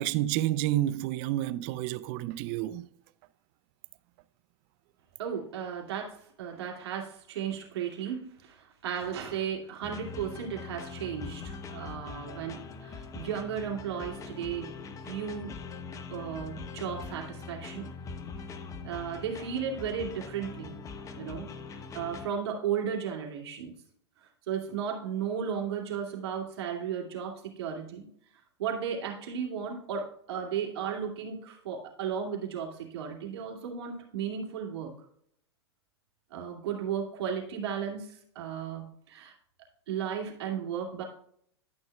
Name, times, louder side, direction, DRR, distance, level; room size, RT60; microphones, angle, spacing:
voice 1, 0.0-2.9, right 14 dB, 45° right, 0.5 m, -29 dB
voice 2, 5.2-14.7 15.0-15.5 16.1-17.9 18.8-20.8 21.2-23.7 24.5-28.1 28.6-34.9 36.3-39.3 39.9-41.0, right 7 dB, 70° right, 2.5 m, -35 dB
sound 1, 9.8-22.3, left 4 dB, 25° left, 0.8 m, -42 dB
11.5 x 6.3 x 2.3 m
hypercardioid pair, 115°, 14 cm